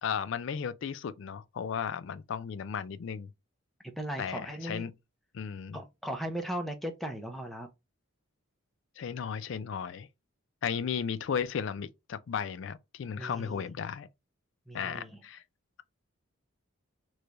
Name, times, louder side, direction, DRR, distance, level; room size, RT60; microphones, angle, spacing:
voice 1, 0.0-3.3 4.2-4.9 5.3-5.8 9.0-10.1 10.6-14.1 14.7-15.4, left 7 dB, 60° left, 0.3 m, -35 dB
voice 2, 3.8-4.9 5.7-7.7 13.2-13.6 14.7-15.1, right 1 dB, ahead, 0.5 m, -37 dB
3.2 x 2.2 x 3.8 m
head